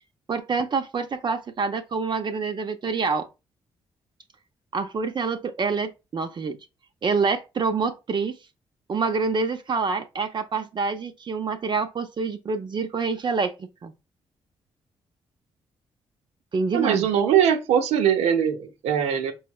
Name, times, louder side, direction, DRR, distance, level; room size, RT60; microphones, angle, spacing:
voice 1, 0.3-3.3 4.7-6.6 7.0-8.4 8.9-13.9 16.5-17.1, right 4 dB, 45° right, 0.6 m, -26 dB
voice 2, 16.7-19.3, right 8 dB, 85° right, 0.7 m, -21 dB
4.2 x 3.1 x 2.3 m
supercardioid pair, 60°, 11 cm